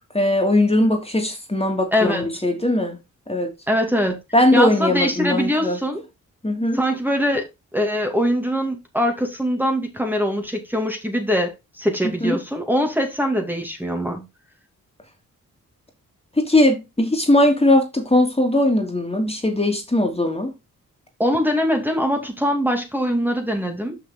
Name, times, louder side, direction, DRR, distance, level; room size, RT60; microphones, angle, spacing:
voice 1, 0.1-3.0 3.3-3.5 4.3-5.8 6.4-6.8 12.2-12.4 16.4-20.5, left 1 dB, 15° left, 2.9 m, -19 dB
voice 2, 1.9-2.3 3.7-4.2 4.5-6.0 6.7-7.5 7.7-14.3 21.2-24.0, equal, 5° right, 2.3 m, -22 dB
6.5 x 5.7 x 3.9 m
supercardioid pair, 45°, 36 cm